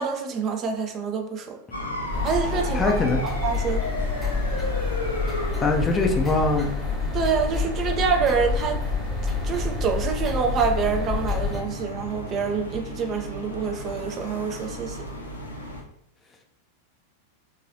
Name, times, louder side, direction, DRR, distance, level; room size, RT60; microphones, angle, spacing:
voice 1, 0.0-1.6 2.2-2.8 3.2-3.8 7.1-8.8 9.4-15.0, right 5 dB, 30° right, 4 dB, 0.5 m, -26 dB
sound 1, 1.7-15.8, equal, 85° left, 0.7 m, -34 dB
sound 2, 2.1-11.6, left 4 dB, ahead, 0.9 m, -28 dB
voice 2, 2.7-3.2 5.6-6.7, left 3 dB, 15° left, 3 dB, 0.5 m, -22 dB
3.7 x 3.0 x 2.7 m, 0.75 s
figure-of-eight pair, 90°, 0 cm